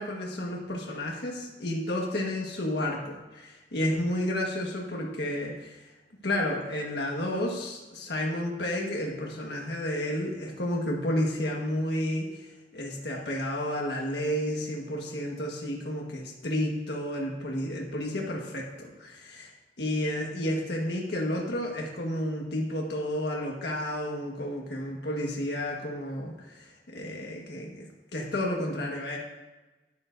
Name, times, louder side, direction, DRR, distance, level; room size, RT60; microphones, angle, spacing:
voice 1, 0.0-5.9 6.2-19.5 19.8-29.2, left 1 dB, 70° left, -1 dB, 1.4 m, -31 dB
11.0 x 10.0 x 2.6 m, 1.1 s
head